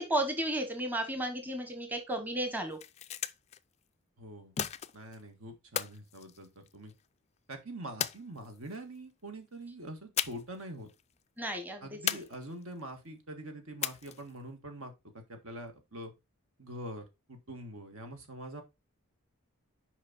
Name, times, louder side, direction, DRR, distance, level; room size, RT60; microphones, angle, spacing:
voice 1, 0.0-2.8 11.4-12.0, right 1 dB, 10° right, 1.0 m, -33 dB
sound 1, 2.6-3.6 4.6-5.2 5.7-7.0 8.0-8.8 10.2-10.6 10.9-11.0 12.1-12.8 13.8-14.4, left 10 dB, 30° left, 0.3 m, -36 dB
voice 2, 4.2-4.5 4.9-6.9 7.5-10.9 11.8-16.1 16.6-18.6, right 1 dB, 70° right, 1.8 m, -44 dB
6.5 x 5.1 x 4.0 m
head